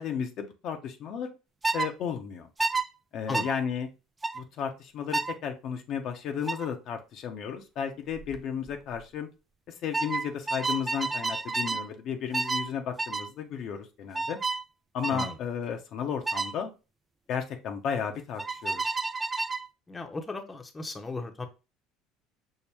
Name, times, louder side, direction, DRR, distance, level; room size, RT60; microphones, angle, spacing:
voice 1, 0.0-1.3 1.7-2.5 3.1-3.9 4.3-9.3 9.8-14.4 14.9-16.7 17.3-18.9, left 7 dB, 55° left, 4 dB, 0.6 m, -33 dB
sound 1, 1.6-1.9 2.6-2.9 3.3-3.5 4.2-4.4 5.1-5.4 6.5-6.7 8.1-8.4 8.7-9.0 9.9-11.9 12.3-12.7 13.0-13.3 14.1-14.6 15.0-15.3 16.3-16.5 18.4-19.7, right 3 dB, 20° right, 0.3 m, -30 dB
voice 2, 19.9-21.5, left 3 dB, 20° left, 5 dB, 0.8 m, -36 dB
5.4 x 2.1 x 3.3 m, 0.29 s
hypercardioid pair, 70°, 0 cm